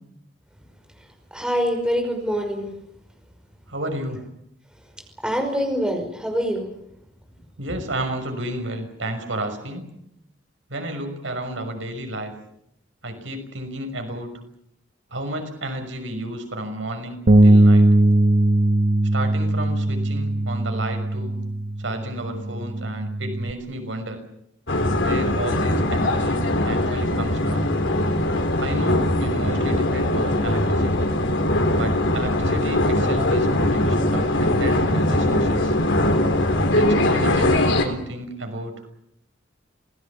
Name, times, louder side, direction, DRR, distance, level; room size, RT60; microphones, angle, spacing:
voice 1, 1.3-2.7 5.2-6.7, equal, 5° right, 3 dB, 5.4 m, -24 dB
voice 2, 3.7-4.2 7.6-9.9 10.7-12.3 13.0-14.3 15.1-17.9 19.1-21.4 21.8-24.2 25.0-27.7 28.6-31.1 31.8-35.8 36.7-38.9, right 1 dB, 80° right, 5 dB, 6.1 m, -32 dB
Bass guitar, 17.3-23.5, right 1 dB, 50° right, 1.0 m, -19 dB
sound 1, 24.7-37.8, left 1 dB, 75° left, 3.9 m, -21 dB
27.0 x 19.0 x 8.6 m, 0.75 s
head